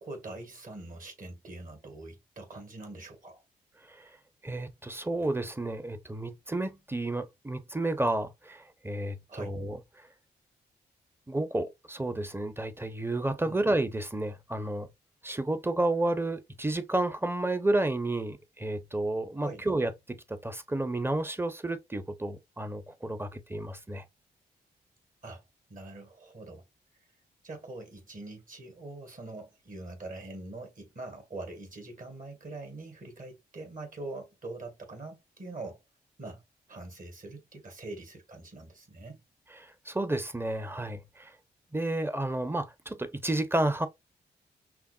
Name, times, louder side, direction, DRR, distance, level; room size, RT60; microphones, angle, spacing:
voice 1, 0.0-3.4 9.3-9.5 13.4-13.6 19.4-19.6 25.2-25.4 25.7-26.6 27.4-35.8 36.2-36.4 36.7-39.2, right 2 dB, 50° right, 2.1 m, -43 dB
voice 2, 4.4-10.1 11.3-14.9 15.2-24.0 39.6-41.3 41.7-43.9, right 2 dB, 15° right, 0.9 m, -31 dB
5.8 x 2.1 x 2.5 m
hypercardioid pair, 40°, 18 cm